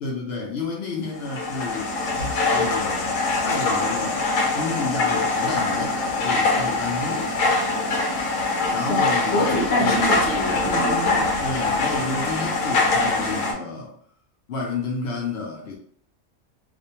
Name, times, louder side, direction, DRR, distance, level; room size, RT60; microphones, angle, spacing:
voice 1, 0.0-2.0 2.5-7.3 8.7-10.1 11.4-13.9 14.5-15.8, left 4 dB, 65° left, 0 dB, 0.7 m, -31 dB
sound 1, 1.1-13.5, left 3 dB, 90° left, 1.0 m, -23 dB
voice 2, 8.8-11.4, left 1 dB, 25° left, -4 dB, 0.6 m, -25 dB
2.4 x 2.1 x 2.8 m, 0.63 s
omnidirectional pair, 1.3 m